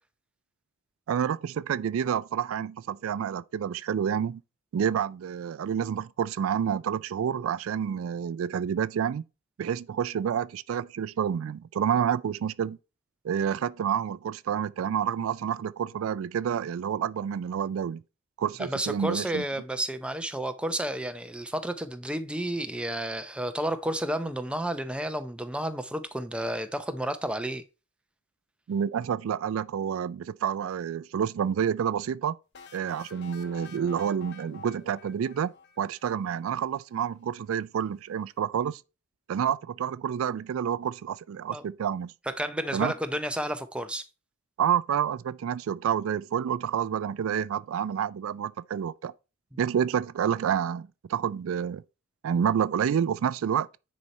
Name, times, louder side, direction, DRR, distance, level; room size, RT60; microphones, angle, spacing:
voice 1, 1.1-4.4 4.7-9.2 9.6-12.8 13.2-18.0 18.4-19.4 28.7-32.4 32.7-38.8 39.3-42.1 42.7-42.9 44.6-49.1 49.6-51.8 52.2-53.7, right 8 dB, 70° right, 0.3 m, -29 dB
voice 2, 18.6-27.6 41.5-41.6 42.3-44.1, right 1 dB, 5° right, 0.6 m, -31 dB
sound 1, 32.5-36.3, left 4 dB, 55° left, 1.0 m, -48 dB
9.7 x 4.2 x 4.1 m
head